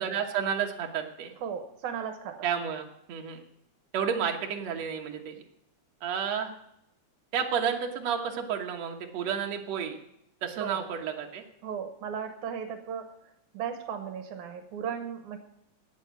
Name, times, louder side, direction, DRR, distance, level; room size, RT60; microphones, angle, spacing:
voice 1, 0.0-1.3 2.4-3.4 3.9-5.4 6.0-6.5 7.3-10.0 10.4-11.4, right 7 dB, 65° right, 2 dB, 2.4 m, -31 dB
voice 2, 1.4-2.5 10.6-10.9 11.6-13.0 13.5-15.4, right 7 dB, 80° right, 6 dB, 2.6 m, -36 dB
17.5 x 6.4 x 8.1 m, 0.78 s
omnidirectional pair, 3.4 m